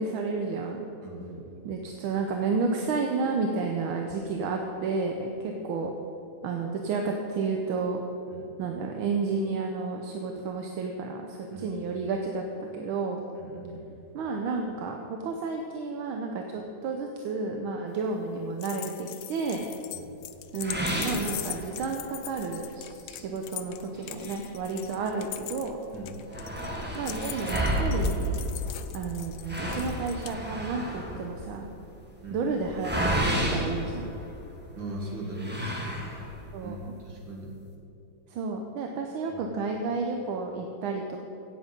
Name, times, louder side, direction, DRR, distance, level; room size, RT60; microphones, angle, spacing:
voice 1, 0.0-0.9 1.6-5.9 6.4-8.0 8.6-13.2 14.1-19.6 20.5-25.8 26.9-28.5 28.9-31.7 32.3-34.1 36.5-36.8 38.3-41.2, right 4 dB, 75° right, 2 dB, 1.6 m, -31 dB
voice 2, 1.0-1.5 8.3-8.5 11.5-11.7 13.3-13.8 19.9-20.1 25.9-26.2 32.2-32.5 34.7-35.7 36.6-36.8 37.0-37.5 39.3-39.4, right 1 dB, 60° right, -1 dB, 2.7 m, -39 dB
sound 1, 18.6-30.3, left 12 dB, 75° left, 0.9 m, -41 dB
sound 2, 20.6-22.1 22.5-22.6 23.1-23.2 23.9-25.3 25.6-25.7 25.9-34.7 35.3-36.5, equal, 5° right, 1.2 m, -31 dB
17.5 x 7.7 x 5.2 m, 2.9 s
omnidirectional pair, 2.3 m